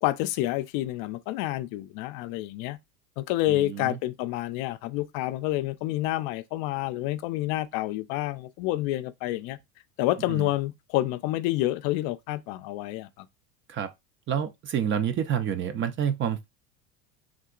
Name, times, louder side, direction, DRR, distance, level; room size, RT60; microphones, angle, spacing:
voice 1, 0.0-2.8 3.2-9.6 10.0-13.3, left 16 dB, 60° left, 0.5 m, -28 dB
voice 2, 3.5-4.0 10.3-10.5 13.7-13.9 14.3-16.5, right 8 dB, 30° right, 0.4 m, -28 dB
3.7 x 2.8 x 2.4 m
supercardioid pair, 100°, 40 cm